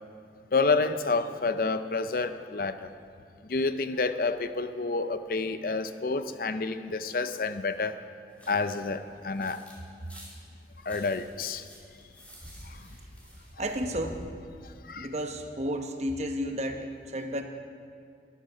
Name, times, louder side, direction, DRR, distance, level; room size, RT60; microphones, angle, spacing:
voice 1, 0.5-2.9 3.5-8.0 8.5-9.6 10.8-11.7 12.7-12.9 14.8-15.1, left 3 dB, 50° left, 11 dB, 0.5 m, -29 dB
sound 1, 8.3-9.7 10.0-14.2, equal, 10° left, 2.5 m, -48 dB
voice 2, 13.6-14.3 14.9-17.4, equal, 40° right, 5 dB, 0.9 m, -32 dB
13.0 x 11.0 x 5.6 m, 2.3 s
head